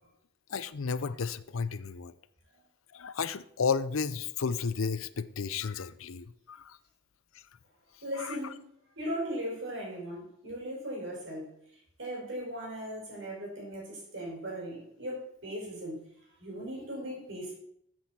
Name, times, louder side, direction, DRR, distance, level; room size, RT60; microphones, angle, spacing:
voice 1, 0.5-2.1 2.9-6.8 8.2-8.4, left 5 dB, 85° left, 14 dB, 0.6 m, -33 dB
voice 2, 8.0-8.7 9.0-11.6 12.0-16.0 16.4-17.5, equal, 65° right, -3 dB, 5.4 m, -38 dB
14.0 x 7.8 x 4.3 m, 0.71 s
head